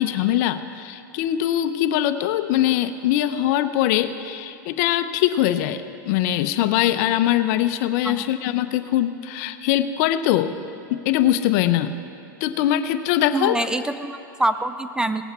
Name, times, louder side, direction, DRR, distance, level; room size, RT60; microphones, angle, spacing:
voice 1, 0.0-10.5 10.9-11.9 12.4-13.6, left 12 dB, 55° left, 11 dB, 0.6 m, -22 dB
voice 2, 13.3-15.2, right 1 dB, 5° right, 10 dB, 0.3 m, -25 dB
18.0 x 7.9 x 4.2 m, 2.9 s
hypercardioid pair, 115°, 11 cm